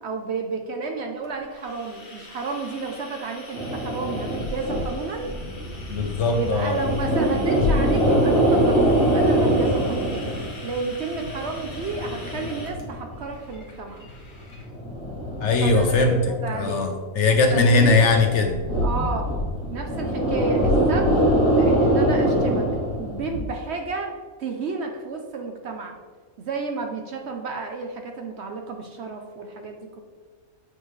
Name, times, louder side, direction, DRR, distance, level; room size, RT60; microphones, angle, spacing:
voice 1, 0.0-5.3 6.3-10.3 10.6-14.1 15.6-16.9 17.5-18.1 18.8-19.3 19.7-22.7 23.0-26.0 26.4-30.0, right 4 dB, 60° right, 4 dB, 0.8 m, -32 dB
sound 1, 1.2-14.7, left 2 dB, 40° left, 1.2 m, -44 dB
sound 2, 3.5-10.8 11.1-13.5 14.0-16.8 17.3-23.4, right 1 dB, 40° right, 1.6 m, -24 dB
voice 2, 5.9-6.8 15.4-18.6, left 3 dB, 60° left, 5 dB, 0.9 m, -20 dB
7.3 x 5.0 x 3.2 m, 1.5 s
omnidirectional pair, 1.5 m